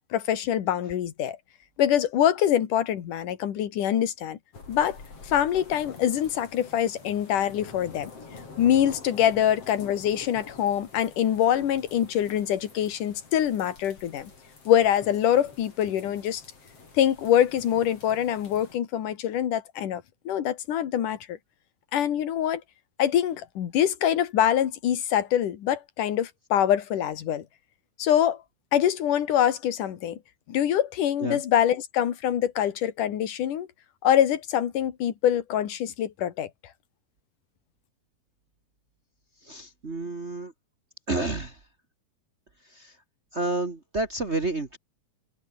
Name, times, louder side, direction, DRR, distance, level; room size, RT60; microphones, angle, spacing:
voice 1, 0.1-1.4 1.8-4.4 4.7-5.0 5.2-8.1 8.6-14.3 14.7-16.4 16.9-21.4 21.9-22.6 23.0-27.4 28.0-28.4 28.7-30.2 30.5-33.7 34.0-36.5, left 10 dB, 65° left, 3.4 m, -24 dB
sound 1, 4.5-18.8, left 4 dB, 40° left, 6.0 m, -47 dB
voice 2, 39.5-40.5 41.1-41.5 42.8-42.9 43.3-44.8, right 2 dB, 35° right, 1.0 m, -30 dB
omnidirectional pair, 4.2 m